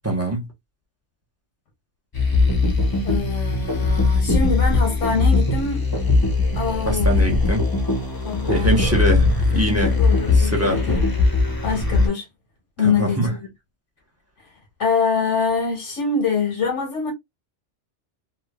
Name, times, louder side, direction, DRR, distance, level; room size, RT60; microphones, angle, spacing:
voice 1, 0.0-0.5 6.9-7.7 8.5-9.2 9.5-10.0 10.4-10.8 12.8-13.3, equal, 15° right, 0.7 m, -23 dB
sound 1, 2.1-12.1, left 3 dB, 25° left, 0.6 m, -20 dB
voice 2, 3.0-5.9 6.5-7.1 8.2-9.0 9.9-11.0 11.6-12.3 12.8-13.5 14.8-17.1, left 5 dB, 90° left, 1.3 m, -24 dB
3.0 x 2.3 x 2.2 m
omnidirectional pair, 1.2 m